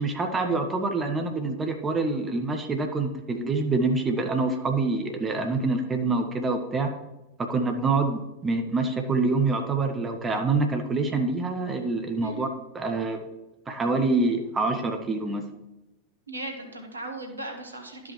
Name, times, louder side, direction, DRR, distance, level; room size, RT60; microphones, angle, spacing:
voice 1, 0.0-6.9 7.4-12.5 12.7-13.2 13.7-15.4, right 3 dB, 20° right, 4 dB, 0.9 m, -26 dB
voice 2, 16.3-18.1, right 2 dB, 80° right, 3 dB, 1.3 m, -37 dB
12.0 x 5.4 x 3.1 m, 0.94 s
figure-of-eight pair, 90°, 0 cm